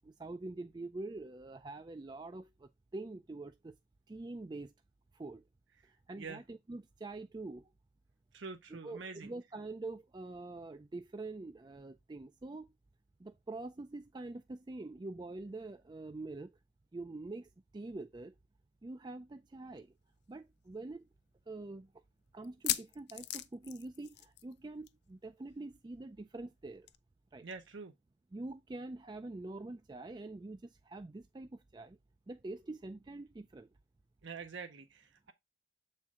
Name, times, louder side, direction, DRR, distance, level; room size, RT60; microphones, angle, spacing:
voice 1, 0.0-3.7 4.1-4.7 5.1-5.4 5.9-7.7 8.7-12.7 13.2-16.6 16.9-18.3 18.8-19.9 20.3-21.1 21.5-21.9 22.3-26.9 27.3-27.4 28.3-32.0 32.3-33.7, right 2 dB, 20° right, 0.3 m, -45 dB
voice 2, 5.8-6.4 8.3-9.3 27.4-27.9 34.2-35.3, right 4 dB, 75° right, 0.7 m, -46 dB
sound 1, 19.8-19.9 20.2-20.3 20.9-21.0 22.4-24.6 24.8-25.1 25.3-25.4 26.9-27.0, left 14 dB, 60° left, 0.5 m, -38 dB
7.2 x 4.4 x 3.6 m
head